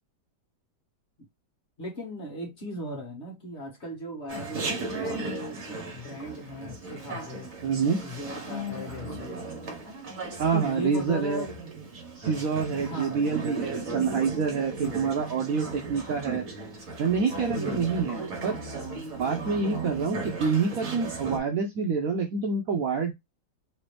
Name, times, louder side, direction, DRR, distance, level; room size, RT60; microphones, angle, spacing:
voice 1, 1.8-7.5 8.0-9.4 10.5-11.5 12.8-13.2 14.6-15.0 17.5-17.9, equal, 40° left, 1.4 m, -38 dB
Chatter, 4.3-21.4, right 3 dB, 50° right, 1.5 m, -36 dB
voice 2, 7.6-8.0 10.4-11.4 12.2-16.4 17.0-18.6 19.2-23.1, right 5 dB, 65° right, 0.9 m, -27 dB
3.3 x 2.8 x 3.2 m
omnidirectional pair, 2.0 m